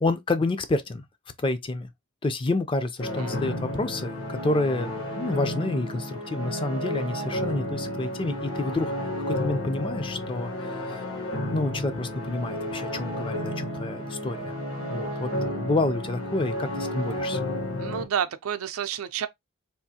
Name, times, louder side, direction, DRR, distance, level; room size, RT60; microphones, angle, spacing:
voice 1, 0.0-1.0 1.4-1.9 2.2-8.9 9.3-11.0 11.5-14.6 14.9-17.4, left 2 dB, 25° left, 0.4 m, -29 dB
sound 1, 3.0-18.1, left 1 dB, 65° left, 1.1 m, -32 dB
voice 2, 17.8-19.3, right 8 dB, 85° right, 0.4 m, -30 dB
3.5 x 2.4 x 2.7 m
head